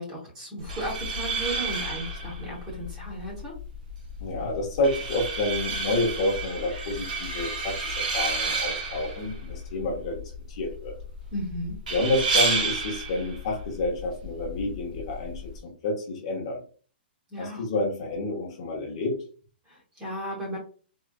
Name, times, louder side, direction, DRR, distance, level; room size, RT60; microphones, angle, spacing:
voice 1, 0.0-3.5 11.3-11.8 17.3-17.7 19.7-20.6, right 1 dB, 10° right, -4 dB, 0.8 m, -35 dB
sound 1, 0.6-15.6, right 3 dB, 50° right, 0.8 m, -31 dB
voice 2, 4.2-11.0 11.9-16.6 17.4-19.2, left 2 dB, 30° left, 0 dB, 0.7 m, -29 dB
3.7 x 2.2 x 2.2 m, 0.40 s
hypercardioid pair, 180°, 6 cm